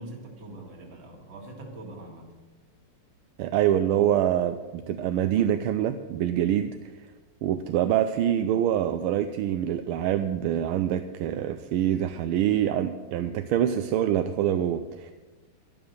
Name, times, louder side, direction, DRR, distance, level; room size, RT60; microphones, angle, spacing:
voice 1, 0.0-2.3, right 1 dB, 65° right, 2 dB, 2.8 m, -43 dB
voice 2, 3.4-6.9 7.4-15.1, right 10 dB, 85° right, 9 dB, 1.5 m, -25 dB
11.0 x 11.0 x 6.6 m, 1.3 s
omnidirectional pair, 2.3 m